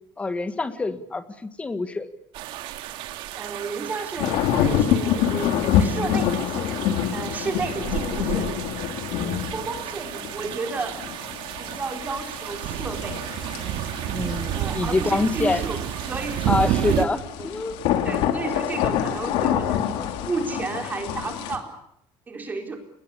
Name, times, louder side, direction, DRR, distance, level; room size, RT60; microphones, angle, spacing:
voice 1, 0.2-2.1 14.0-15.6 16.5-17.7 18.6-18.7, left 3 dB, 15° left, 10 dB, 1.7 m, -26 dB
sound 1, 2.3-17.1, right 12 dB, 70° right, 2.2 m, -31 dB
voice 2, 3.4-6.7 7.1-8.6 9.2-11.0 11.6-13.3 14.5-15.8 16.1-16.7 17.4-17.5 18.0-21.7 22.3-22.8, right 4 dB, 20° right, 4 dB, 4.0 m, -32 dB
sound 2, 4.2-21.6, left 9 dB, 90° left, 3.3 m, -27 dB
29.5 x 21.5 x 7.0 m, 0.75 s
cardioid pair, 170°, 9 cm